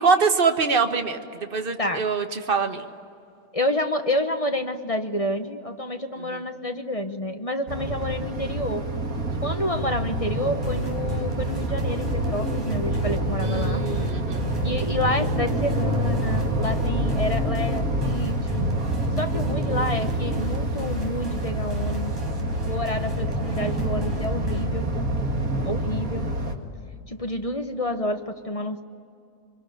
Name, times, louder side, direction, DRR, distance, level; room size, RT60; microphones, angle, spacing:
voice 1, 0.0-2.9 6.2-6.4 9.3-9.5 13.4-14.5 23.0-23.1, right 5 dB, 40° right, 6 dB, 1.6 m, -24 dB
voice 2, 3.5-8.9 9.4-13.8 14.6-18.7 19.2-22.1 22.6-24.9 25.6-26.3 27.1-28.8, left 1 dB, 25° left, 6 dB, 1.1 m, -29 dB
sound 1, 7.7-26.5, right 1 dB, 65° right, 2.5 m, -27 dB
sound 2, 10.6-24.6, right 1 dB, 15° right, 5.0 m, -36 dB
25.0 x 24.0 x 9.2 m, 2.5 s
omnidirectional pair, 1.6 m